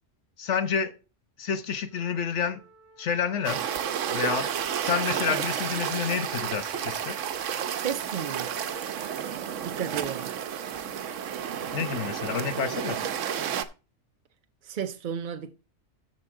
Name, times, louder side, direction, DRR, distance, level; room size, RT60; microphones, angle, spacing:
voice 1, 0.4-0.9 1.4-2.6 3.0-3.7 4.1-4.5 4.8-7.2 11.7-13.0, left 7 dB, 70° left, 1.3 m, -29 dB
Wind instrument woodwind instrument, 1.9-12.2, left 2 dB, 25° left, 3.6 m, -53 dB
sound 1, 3.4-13.6, right 8 dB, 85° right, 1.1 m, -31 dB
voice 2, 7.7-8.5 9.6-10.3 14.6-15.5, right 8 dB, 55° right, 0.6 m, -33 dB
13.5 x 5.2 x 3.6 m
omnidirectional pair, 1.3 m